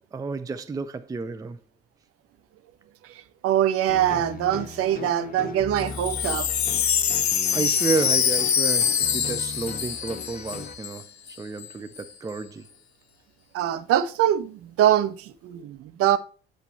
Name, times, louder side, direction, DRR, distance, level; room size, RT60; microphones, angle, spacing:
voice 1, 0.1-1.6 7.2-12.7, right 4 dB, 10° right, 0.5 m, -31 dB
voice 2, 3.0-6.5 13.5-16.2, right 11 dB, 45° right, 0.8 m, -23 dB
sound 1, 3.9-10.7, left 5 dB, 25° left, 1.2 m, -38 dB
Wind chime, 5.8-11.0 11.3-11.4 11.6-12.0, left 8 dB, 85° left, 0.5 m, -25 dB
8.1 x 6.6 x 3.1 m
figure-of-eight pair, 60°, 31 cm